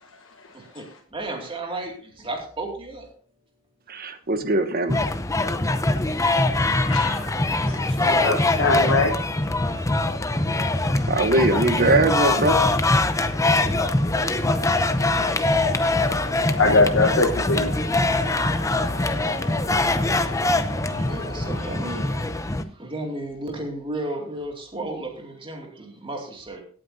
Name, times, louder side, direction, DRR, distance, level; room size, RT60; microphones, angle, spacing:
voice 1, 0.5-3.1 6.9-9.2 20.5-22.2 22.7-26.6, right 2 dB, 25° right, 2 dB, 2.5 m, -34 dB
voice 2, 3.9-5.0 11.1-12.6, right 2 dB, 45° right, 9 dB, 1.1 m, -21 dB
sound 1, 4.9-22.6, left 2 dB, 15° left, 0.6 m, -23 dB
voice 3, 6.7-9.1 9.4-9.8 16.0-17.9 18.3-18.4, left 3 dB, 65° left, 0 dB, 1.3 m, -24 dB
Brass instrument, 13.5-22.4, left 1 dB, 50° left, 2.4 m, -40 dB
17.5 x 8.7 x 2.8 m, 0.43 s
head